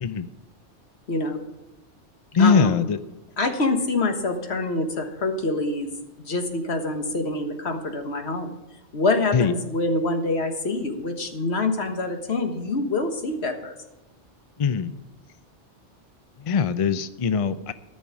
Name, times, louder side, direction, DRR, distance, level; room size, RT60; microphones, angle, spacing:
voice 1, 1.1-1.4 2.4-2.8 3.4-5.9 6.2-8.5 8.9-13.7, left 2 dB, 65° left, 5 dB, 1.6 m, -26 dB
voice 2, 2.3-3.0 9.3-9.5 14.6-14.9 16.4-17.7, left 6 dB, 45° left, 13 dB, 0.4 m, -21 dB
14.0 x 6.3 x 7.2 m, 1.0 s
omnidirectional pair, 1.2 m